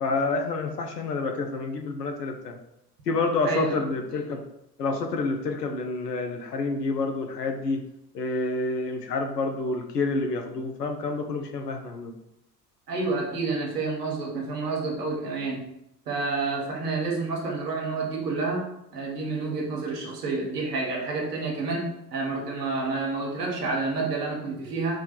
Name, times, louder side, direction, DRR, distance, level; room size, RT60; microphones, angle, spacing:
voice 1, 0.0-2.6 3.1-4.4 4.8-7.8 8.1-12.1, left 3 dB, 80° left, 4 dB, 0.7 m, -28 dB
voice 2, 3.4-3.8 12.9-15.7 16.1-25.0, right 3 dB, 75° right, -1 dB, 1.2 m, -29 dB
4.4 x 2.3 x 4.3 m, 0.79 s
figure-of-eight pair, 60°, 47 cm